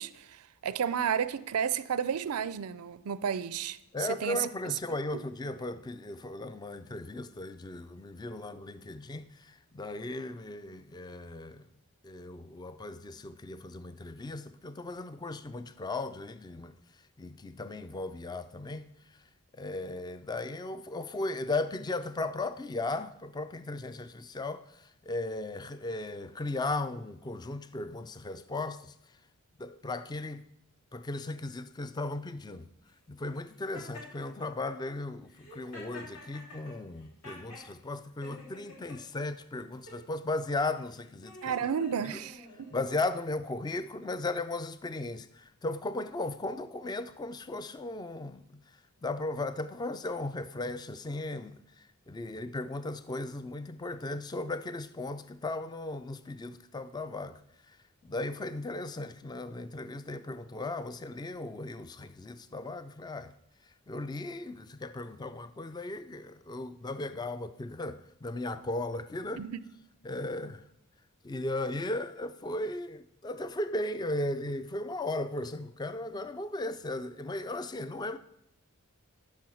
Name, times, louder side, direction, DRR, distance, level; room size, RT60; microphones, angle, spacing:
voice 1, 0.0-4.4 41.4-42.7 69.4-69.6, right 7 dB, 85° right, 0.5 m, -32 dB
voice 2, 3.9-11.7 12.0-16.7 17.2-19.2 19.6-29.2 29.6-30.4 30.9-32.7 33.1-41.5 42.1-42.2 42.7-57.4 57.7-57.8 58.0-63.3 63.6-69.4 70.0-70.6 71.2-78.2, left 2 dB, 20° left, 0.3 m, -36 dB
Laughter, 33.7-34.5 35.3-37.7 38.2-39.0 39.7-40.0 40.7-43.0, left 2 dB, 75° left, 3.2 m, -48 dB
10.5 x 5.6 x 6.3 m
head